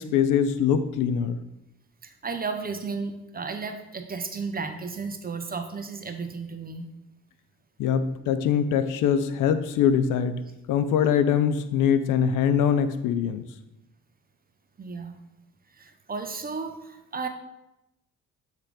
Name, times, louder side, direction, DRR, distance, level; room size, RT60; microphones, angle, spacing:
voice 1, 0.0-1.4 7.8-10.4 10.7-13.4, left 8 dB, 90° left, 11 dB, 0.6 m, -23 dB
voice 2, 2.0-6.8 14.8-15.2 15.7-17.3, right 4 dB, 30° right, 7 dB, 0.7 m, -34 dB
7.4 x 3.3 x 5.0 m, 0.89 s
cardioid pair, 90°, 30 cm